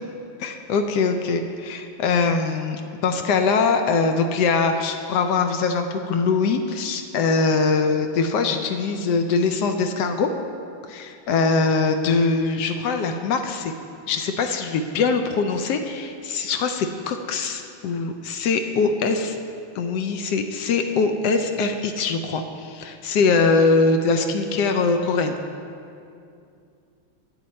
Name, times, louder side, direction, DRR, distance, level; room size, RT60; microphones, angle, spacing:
voice 1, 0.4-10.3 10.9-13.7 14.1-19.3 19.7-25.4, left 4 dB, 90° left, 6 dB, 0.9 m, -22 dB
9.2 x 9.0 x 4.2 m, 2.5 s
omnidirectional pair, 2.4 m